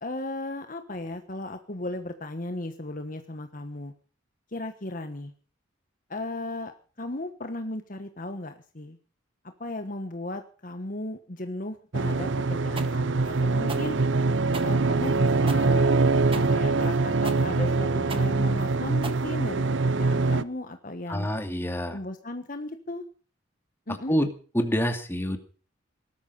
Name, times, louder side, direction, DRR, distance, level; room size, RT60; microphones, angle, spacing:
voice 1, 0.0-3.9 4.5-5.3 6.1-9.0 9.6-14.0 14.6-16.0 16.3-21.3 21.9-23.0 23.9-24.2, left 2 dB, 45° left, 7 dB, 1.3 m, -36 dB
sound 1, 11.9-20.4, right 3 dB, 70° right, 0.8 m, -24 dB
sound 2, 12.8-19.8, right 3 dB, 25° right, 1.7 m, -40 dB
voice 2, 21.1-22.0 24.1-24.3 24.5-25.4, equal, 10° left, 6 dB, 2.4 m, -26 dB
19.0 x 13.0 x 5.4 m, 0.39 s
head